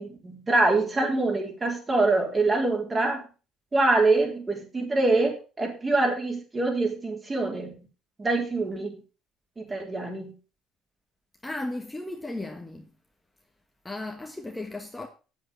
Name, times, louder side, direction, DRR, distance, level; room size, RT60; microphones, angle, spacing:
voice 1, 0.0-3.2 3.7-7.7 8.2-8.9 9.6-10.3, right 2 dB, 25° right, 4.1 m, -25 dB
voice 2, 11.4-12.9 13.8-15.1, left 2 dB, 10° left, 1.4 m, -35 dB
8.1 x 7.9 x 5.4 m
supercardioid pair, 70°, 0 cm